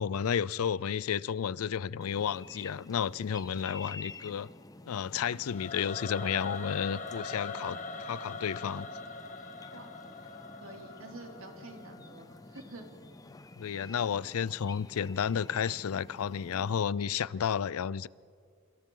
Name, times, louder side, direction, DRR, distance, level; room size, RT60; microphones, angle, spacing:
voice 1, 0.0-4.5 4.9-7.8 8.0-8.9 13.6-18.1, left 7 dB, 85° left, 0.4 m, -32 dB
sound 1, 2.0-16.8, left 3 dB, 15° left, 0.5 m, -50 dB
Singing / Musical instrument, 5.4-12.5, left 3 dB, 35° left, 1.4 m, -42 dB
voice 2, 9.7-10.2 10.5-12.9, right 2 dB, 70° right, 2.9 m, -48 dB
27.5 x 26.0 x 3.8 m
head